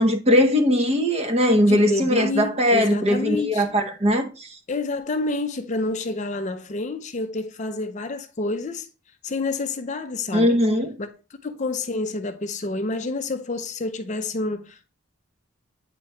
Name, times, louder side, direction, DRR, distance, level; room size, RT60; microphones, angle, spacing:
voice 1, 0.0-4.5 10.3-10.9, equal, 30° right, 0.7 m, -20 dB
voice 2, 1.7-3.7 4.7-8.9 9.2-10.6 11.0-11.1 11.4-14.9, left 2 dB, 35° left, 0.5 m, -28 dB
8.4 x 3.0 x 4.4 m
head